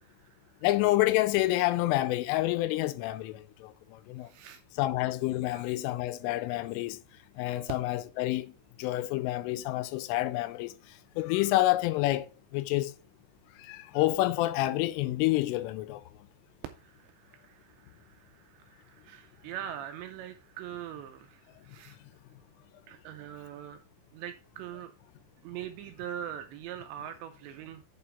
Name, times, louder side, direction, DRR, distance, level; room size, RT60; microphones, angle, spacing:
voice 1, 0.0-0.6 4.2-4.6 5.5-5.7 16.7-22.0 22.9-23.8 24.1-24.9 25.4-27.8, right 10 dB, 85° right, 2.6 m, -43 dB
voice 2, 0.6-4.3 4.8-7.0 7.4-8.5 8.8-12.3 12.5-12.9 13.6-16.0, left 17 dB, 85° left, 3.2 m, -28 dB
8.8 x 6.9 x 3.4 m
omnidirectional pair, 5.7 m